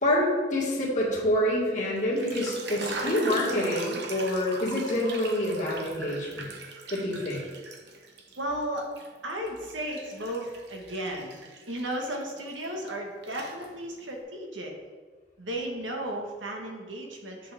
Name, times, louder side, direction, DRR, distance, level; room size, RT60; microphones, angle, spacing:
voice 1, 0.0-6.5 6.9-7.4, left 1 dB, 40° left, -5 dB, 1.8 m, -27 dB
sound 1, 2.0-8.4 8.8-12.9 13.2-14.0, right 3 dB, 60° right, 0.9 m, -40 dB
voice 2, 8.4-8.9 9.2-11.4 11.7-14.7 15.4-17.5, right 1 dB, 90° right, 1 dB, 1.5 m, -34 dB
7.6 x 6.7 x 3.5 m, 1.4 s
head